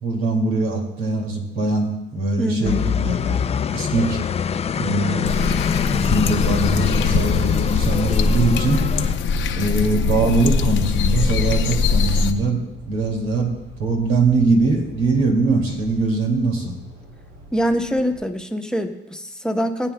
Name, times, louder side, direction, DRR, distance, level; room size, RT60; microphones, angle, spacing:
voice 1, 0.0-3.4 3.7-4.2 4.8-5.6 5.9-8.8 9.5-13.5 13.8-16.7, right 3 dB, 90° right, 1 dB, 2.3 m, -22 dB
voice 2, 2.4-2.8 17.5-19.9, equal, 5° left, 5 dB, 0.9 m, -24 dB
sound 1, 2.6-9.1, left 7 dB, 30° left, 0.4 m, -24 dB
sound 2, 5.2-12.3, left 5 dB, 75° left, 0.8 m, -21 dB
sound 3, 5.6-18.3, right 1 dB, 60° right, 2.5 m, -43 dB
19.0 x 9.0 x 2.2 m, 0.95 s
cardioid pair, 90°, 20 cm